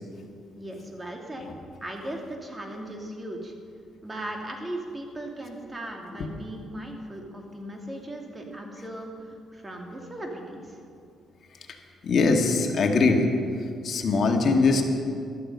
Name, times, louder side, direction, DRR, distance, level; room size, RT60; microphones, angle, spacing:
voice 1, 0.6-1.4 1.8-3.5 4.0-10.8, right 1 dB, 20° right, 1 dB, 2.4 m, -37 dB
voice 2, 12.0-13.2 13.8-14.8, left 4 dB, 55° left, 3 dB, 1.8 m, -21 dB
14.5 x 12.5 x 5.4 m, 2.4 s
cardioid pair, 90°, 0 cm